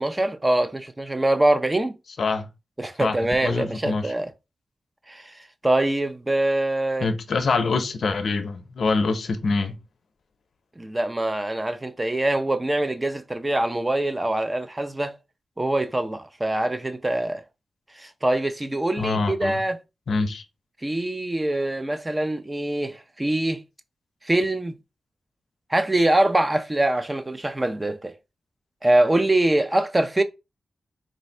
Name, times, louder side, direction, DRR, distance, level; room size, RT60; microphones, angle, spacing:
voice 1, 0.0-2.0 2.8-4.3 5.1-7.1 10.8-15.1 15.6-17.4 18.0-19.8 20.8-23.6 24.2-24.8 25.7-28.1 28.8-30.2, right 1 dB, 20° right, 0.4 m, -24 dB
voice 2, 3.4-4.1 7.0-9.8 19.0-19.6 20.1-20.4, left 4 dB, 65° left, 0.6 m, -25 dB
3.2 x 2.6 x 4.2 m
wide cardioid pair, 115°, 0 cm